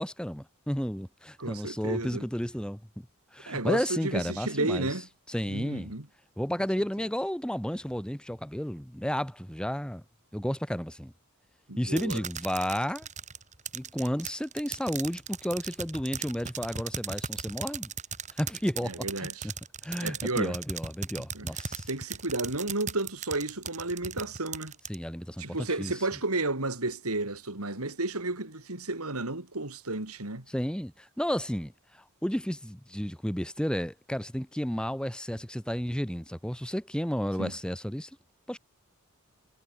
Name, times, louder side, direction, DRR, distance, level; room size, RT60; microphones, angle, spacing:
voice 1, 0.0-2.8 3.3-4.9 5.3-5.9 6.4-10.0 10.3-11.1 11.8-13.1 13.7-17.9 18.3-19.5 19.8-21.9 24.9-25.9 30.5-38.1 38.5-38.6, equal, 5° left, 1.6 m, -32 dB
voice 2, 1.4-2.3 3.5-5.1 5.5-6.1 11.7-12.2 18.8-19.5 20.0-20.6 21.3-21.5 21.9-24.7 25.4-30.4 37.4-37.5, right 2 dB, 80° right, 3.8 m, -32 dB
sound 1, 12.0-25.0, right 6 dB, 35° right, 6.0 m, -37 dB
head